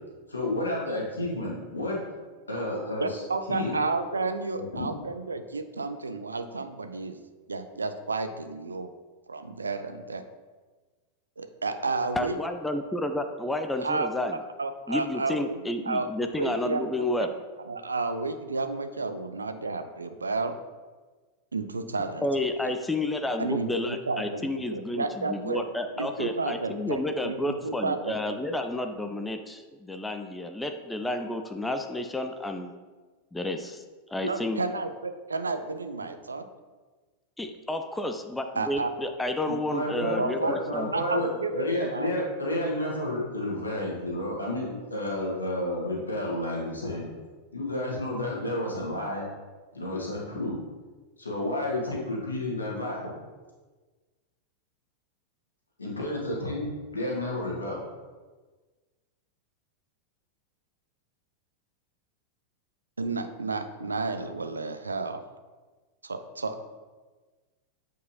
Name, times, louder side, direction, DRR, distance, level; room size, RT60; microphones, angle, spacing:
voice 1, 0.3-2.0 2.5-3.2 3.5-3.7 4.5-4.9 39.5-47.1 47.5-49.3 49.7-50.5 51.2-53.1 55.8-57.8, left 1 dB, 80° left, -3 dB, 1.6 m, -31 dB
voice 2, 3.0-7.2 7.5-8.9 9.3-10.2 11.4-12.4 13.8-14.1 14.6-16.1 16.4-17.3 17.7-20.5 21.5-22.8 23.4-25.6 26.0-28.4 34.2-36.4 38.6-38.9 40.2-42.1 63.0-65.2 66.0-66.7, right 3 dB, 75° right, 9 dB, 0.4 m, -31 dB
voice 3, 12.2-14.4 14.9-17.3 22.2-32.7 33.3-33.8 34.1-34.6 37.4-40.9, left 1 dB, 5° left, 6 dB, 0.4 m, -31 dB
7.9 x 4.6 x 2.8 m, 1.3 s
figure-of-eight pair, 90°, 0 cm